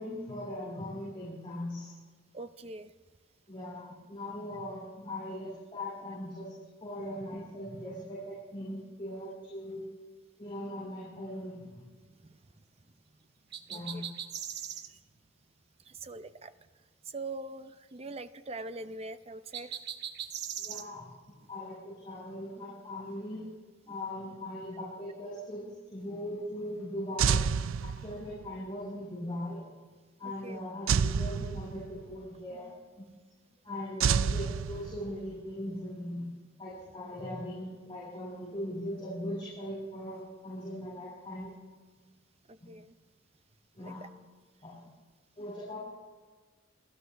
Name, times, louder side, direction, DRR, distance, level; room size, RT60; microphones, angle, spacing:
voice 1, 0.0-1.9 3.5-6.5 6.8-9.8 10.4-11.8 13.7-14.0 20.6-21.1 21.5-23.4 23.9-25.6 25.9-27.4 27.8-29.6 30.2-32.7 33.0-33.1 33.6-36.3 36.6-41.5 42.6-42.7 43.8-44.0 44.6-44.8 45.4-45.8, left 1 dB, 25° left, -8 dB, 6.5 m, -39 dB
voice 2, 2.3-2.9 12.2-12.4 13.9-14.0 14.9-15.0 15.9-16.5 17.1-19.8 30.2-30.6 42.5-42.9 43.8-44.1 45.4-45.5, right 2 dB, 30° right, 11 dB, 0.6 m, -43 dB
sound 1, 13.5-14.9 19.5-20.9, right 9 dB, 55° right, 1.0 m, -39 dB
sound 2, 27.2-28.5 30.9-32.1 34.0-35.3, right 6 dB, 90° right, 0.4 m, -29 dB
29.5 x 14.0 x 3.4 m, 1.4 s
head